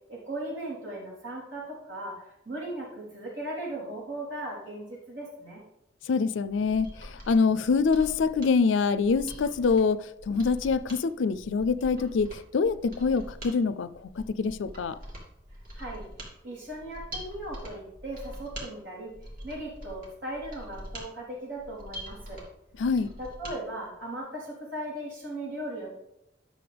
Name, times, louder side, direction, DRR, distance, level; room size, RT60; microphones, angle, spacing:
voice 1, 0.1-5.6 15.7-19.1 19.4-22.5 23.2-25.9, right 1 dB, 75° right, 3.8 m, -38 dB
voice 2, 6.1-15.0 22.8-23.1, left 5 dB, 80° left, 0.4 m, -25 dB
Mechanisms, 6.5-23.6 23.9-24.0, equal, 45° right, 2.4 m, -44 dB
11.5 x 6.5 x 3.4 m
head